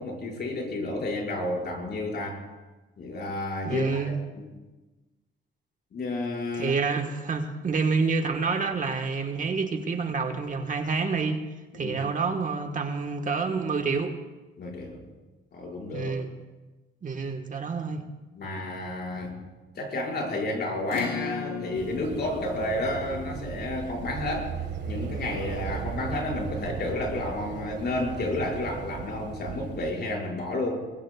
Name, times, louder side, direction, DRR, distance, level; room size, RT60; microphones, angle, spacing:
voice 1, 0.0-2.4 3.0-4.5 5.9-6.7 11.7-12.0 14.6-15.0 15.5-16.1 18.4-19.5 19.7-24.6 24.9-30.9, left 2 dB, 55° left, -1 dB, 5.6 m, -31 dB
voice 2, 3.6-4.2 6.5-11.4 11.7-14.2 15.9-16.3 17.0-18.0, right 4 dB, 40° right, 5 dB, 1.4 m, -28 dB
Acoustic guitar / Strum, 20.9-25.8, left 6 dB, 85° left, 5.7 m, -38 dB
sound 1, 21.7-29.9, right 6 dB, 60° right, 1.7 m, -36 dB
23.0 x 20.5 x 2.4 m, 1.2 s
cardioid pair, 90°, 20 cm